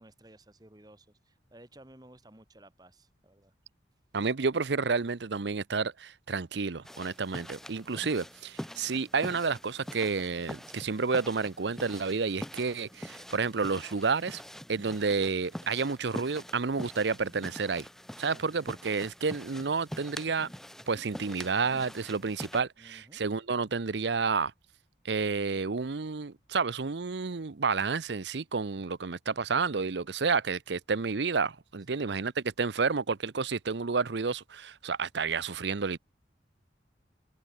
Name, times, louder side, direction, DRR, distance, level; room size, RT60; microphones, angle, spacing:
voice 1, 0.0-3.5 18.3-18.8 22.8-23.2 31.9-32.3, right 1 dB, 20° right, 1.7 m, -56 dB
voice 2, 4.1-14.4 14.7-17.8 18.2-20.5 20.9-24.5 25.0-36.0, right 4 dB, 70° right, 0.7 m, -30 dB
sound 1, 6.8-22.6, equal, ahead, 0.5 m, -45 dB
head